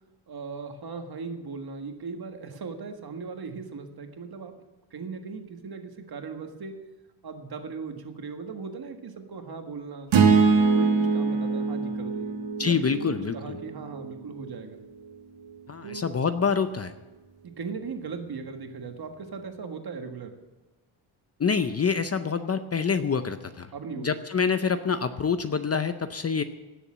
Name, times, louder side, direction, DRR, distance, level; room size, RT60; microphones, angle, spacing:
voice 1, 0.3-4.6 4.9-6.8 7.2-10.1 10.7-14.8 15.8-16.1 17.4-20.4 23.7-24.1, right 5 dB, 50° right, 5 dB, 1.7 m, -38 dB
sound 1, 10.1-14.4, right 5 dB, 65° right, 1.8 m, -23 dB
voice 2, 12.6-13.6 15.7-16.9 21.4-26.4, left 6 dB, 30° left, 10 dB, 0.6 m, -26 dB
17.5 x 7.0 x 7.3 m, 1.1 s
wide cardioid pair, 135°, 50 cm